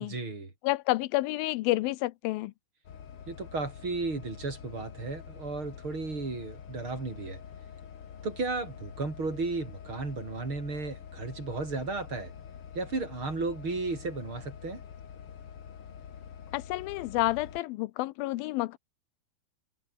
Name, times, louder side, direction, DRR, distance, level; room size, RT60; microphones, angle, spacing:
voice 1, 0.0-0.5 3.3-7.4 8.2-12.3 12.7-14.8, right 3 dB, 30° right, 5.9 m, -34 dB
voice 2, 0.6-2.5 16.5-18.8, left 18 dB, 80° left, 2.2 m, -29 dB
sound 1, 2.8-17.6, left 8 dB, 45° left, 2.1 m, -46 dB
omnidirectional pair, 4.7 m